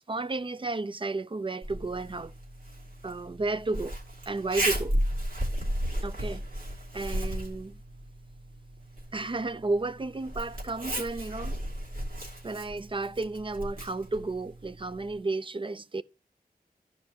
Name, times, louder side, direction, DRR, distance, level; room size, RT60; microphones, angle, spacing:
voice 1, 0.1-2.3 3.0-4.0 4.3-5.0 6.0-6.4 6.9-7.8 9.1-11.6 12.4-16.0, right 3 dB, 35° right, 0.4 m, -32 dB
Zipper (clothing), 1.6-15.2, equal, 65° right, 2.8 m, -35 dB
14.5 x 5.1 x 2.9 m
wide cardioid pair, 70°, 16 cm